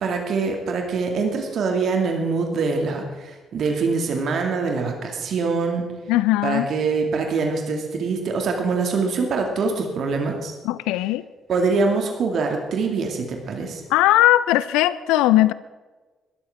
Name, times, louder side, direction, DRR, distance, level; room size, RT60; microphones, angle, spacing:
voice 1, 0.0-5.8 6.4-10.5 11.5-13.8, right 4 dB, 55° right, 3 dB, 2.3 m, -24 dB
voice 2, 6.1-6.7 10.6-11.2 13.9-15.5, left 15 dB, 65° left, 18 dB, 0.4 m, -18 dB
20.0 x 13.0 x 3.6 m, 1.3 s
figure-of-eight pair, 45°, 0 cm